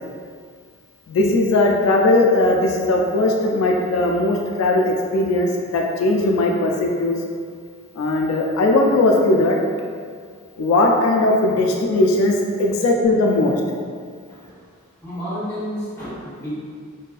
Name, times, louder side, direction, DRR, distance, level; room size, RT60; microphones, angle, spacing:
voice 1, 1.1-7.2 8.0-9.6 10.6-13.6, left 2 dB, 90° left, 1 dB, 0.3 m, -18 dB
voice 2, 15.0-16.5, equal, 10° left, -11 dB, 0.9 m, -30 dB
2.6 x 2.3 x 2.3 m, 2.1 s
head